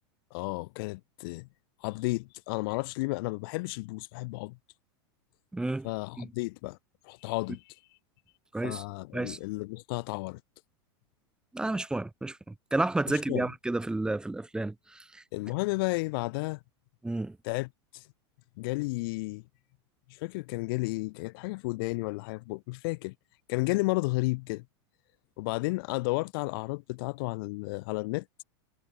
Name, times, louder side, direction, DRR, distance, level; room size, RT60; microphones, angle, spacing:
voice 1, 0.3-1.5 1.8-4.6 5.8-6.8 7.0-7.7 8.6-10.4 13.1-13.5 15.3-16.6 17.4-18.0 18.6-19.4 20.1-23.1 23.5-24.6 25.4-28.2, left 25 dB, 55° left, 4.5 m, -32 dB
voice 2, 5.5-5.9 6.2-6.3 8.5-8.8 9.1-9.4 11.5-15.2 17.0-17.4, right 2 dB, 5° right, 5.7 m, -31 dB
supercardioid pair, 145°, 14 cm